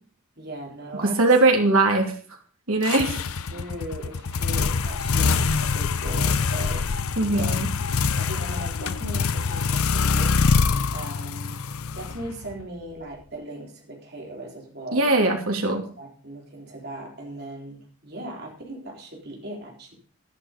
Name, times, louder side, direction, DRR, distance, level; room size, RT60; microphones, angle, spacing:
voice 1, 0.4-1.3 3.5-6.9 7.3-7.6 8.2-10.4 10.9-11.6 11.9-15.2 16.0-19.9, right 1 dB, 50° right, -1 dB, 3.9 m, -38 dB
voice 2, 1.0-2.1 2.7-3.1 7.2-7.7 14.9-15.9, right 2 dB, 90° right, 2 dB, 3.0 m, -20 dB
sound 1, 2.8-12.6, left 5 dB, 90° left, 0.7 m, -24 dB
11.5 x 11.0 x 5.2 m, 0.43 s
head